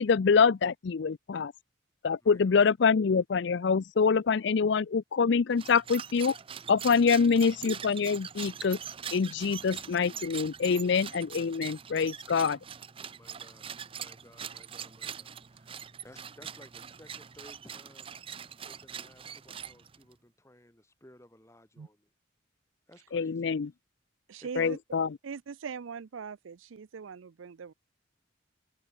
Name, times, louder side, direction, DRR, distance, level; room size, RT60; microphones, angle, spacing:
voice 1, 0.0-1.5 2.0-6.4 6.7-8.8 9.1-12.6 23.1-23.7 24.5-25.1, left 5 dB, 60° left, 0.4 m, -25 dB
voice 2, 2.2-2.5 7.0-7.5 13.1-13.7 14.0-18.2 18.7-22.1 22.9-23.5 24.4-24.8, left 1 dB, 15° left, 4.4 m, -57 dB
sound 1, 5.5-20.1, right 8 dB, 25° right, 0.5 m, -43 dB
voice 3, 24.3-24.8 25.2-27.7, right 6 dB, 75° right, 0.5 m, -41 dB
head